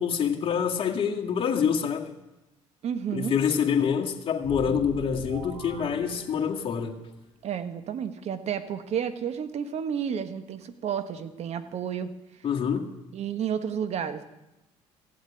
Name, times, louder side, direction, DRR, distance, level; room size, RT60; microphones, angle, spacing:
voice 1, 0.0-2.1 3.1-7.0 12.4-12.9, left 7 dB, 45° left, 2.0 m, -26 dB
voice 2, 2.8-3.3 7.4-12.1 13.1-14.2, right 8 dB, 55° right, 1.3 m, -31 dB
sound 1, 4.4-6.9, right 3 dB, 80° right, 4.7 m, -40 dB
15.5 x 7.8 x 9.9 m
supercardioid pair, 85°, 13 cm